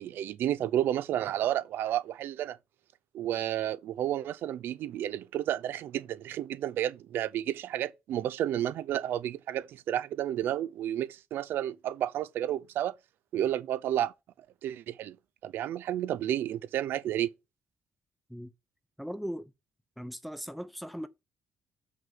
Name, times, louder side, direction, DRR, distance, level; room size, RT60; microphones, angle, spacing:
voice 1, 0.0-2.6 3.1-12.9 13.3-14.1 14.6-15.2 15.4-17.3, right 11 dB, 80° right, 0.6 m, -31 dB
voice 2, 19.0-19.5 20.0-21.1, equal, ahead, 0.7 m, -38 dB
7.6 x 6.0 x 5.4 m
cardioid pair, 170°, 4 cm